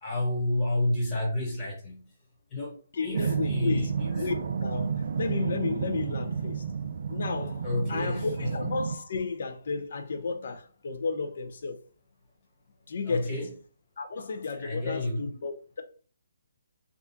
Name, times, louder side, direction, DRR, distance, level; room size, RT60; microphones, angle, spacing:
voice 1, 0.0-2.1 2.5-4.3 7.6-8.6 13.1-13.5 14.6-15.2, left 1 dB, 20° left, 1.4 m, -30 dB
voice 2, 2.9-3.9 4.2-6.6 7.1-11.8 12.9-13.5 14.0-15.8, left 4 dB, 60° left, 0.6 m, -33 dB
sound 1, 3.1-9.0, right 6 dB, 55° right, 0.3 m, -31 dB
3.5 x 2.4 x 2.8 m
hypercardioid pair, 155°, 0 cm